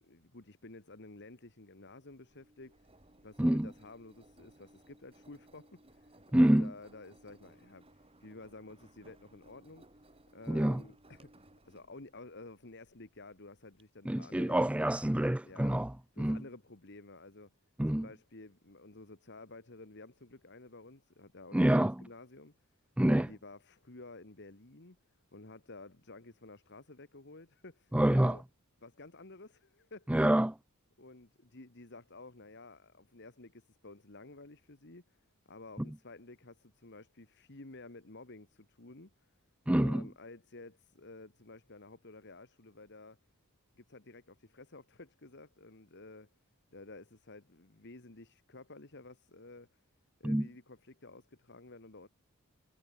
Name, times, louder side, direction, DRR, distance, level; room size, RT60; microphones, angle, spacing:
voice 1, 0.0-2.9 3.2-9.9 10.3-14.7 15.4-15.8 16.1-17.5 17.9-22.6 23.1-25.0 25.3-28.4 28.8-30.1 31.0-39.3 39.8-43.2 43.8-46.3 46.7-49.8 50.2-52.1, left 2 dB, 55° left, 1.9 m, -52 dB
Engine, 2.1-13.8, right 1 dB, 25° right, 5.6 m, -62 dB
voice 2, 6.3-6.7 10.5-10.8 14.1-15.9 16.2-16.4 17.8-18.1 21.5-21.9 23.0-23.3 27.9-28.4 30.1-30.5 39.7-40.0 50.2-50.5, right 1 dB, 5° right, 0.4 m, -27 dB
head